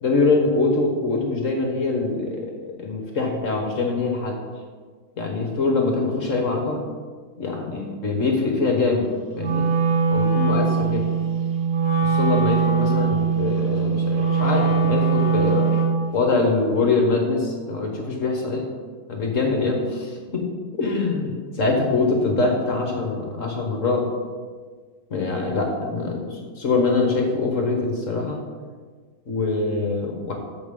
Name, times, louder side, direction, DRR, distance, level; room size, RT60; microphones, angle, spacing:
voice 1, 0.0-4.4 5.2-6.8 7.4-9.1 9.4-9.6 10.1-11.1 12.0-15.7 16.1-18.6 19.1-20.5 20.8-24.0 25.1-28.4 29.3-30.3, left 3 dB, 50° left, 1 dB, 1.3 m, -23 dB
Wind instrument woodwind instrument, 9.4-16.1, right 6 dB, 90° right, 1.9 m, -21 dB
13.5 x 5.1 x 3.7 m, 1.5 s
omnidirectional pair, 1.9 m